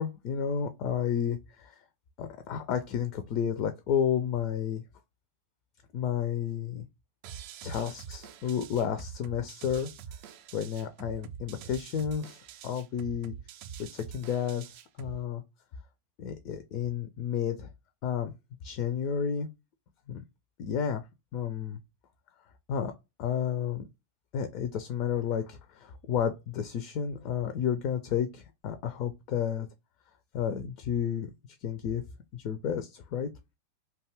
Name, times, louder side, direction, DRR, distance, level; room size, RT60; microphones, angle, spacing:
voice 1, 0.0-1.8 2.2-4.8 5.9-6.8 7.6-9.9 10.5-13.3 13.8-14.6 15.0-15.4 16.2-17.7 18.0-18.3 18.6-19.5 20.1-20.2 20.6-21.0 21.3-21.8 22.7-22.9 23.2-23.9 24.3-29.7 30.3-31.3 31.6-32.0 32.3-33.3, left 8 dB, 40° left, 0.4 m, -31 dB
sound 1, 7.2-15.2, right 8 dB, 45° right, 0.3 m, -45 dB
2.5 x 2.3 x 3.1 m
figure-of-eight pair, 90°, 0 cm